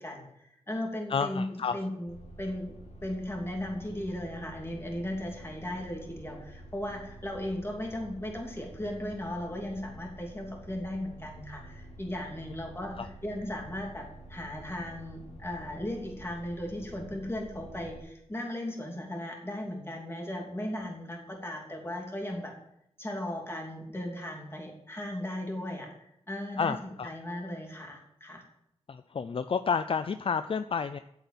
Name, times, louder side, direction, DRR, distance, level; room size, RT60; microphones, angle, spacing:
voice 1, 0.0-22.6 23.0-25.9 26.3-28.4, left 1 dB, 20° left, 0 dB, 2.9 m, -37 dB
voice 2, 1.1-1.8 13.0-13.1 26.6-27.1 28.9-31.0, left 6 dB, 50° left, 11 dB, 0.4 m, -30 dB
sound 1, 2.1-18.0, right 1 dB, 75° left, 2.2 m, -49 dB
8.2 x 7.9 x 7.4 m, 0.79 s
wide cardioid pair, 70°, 11 cm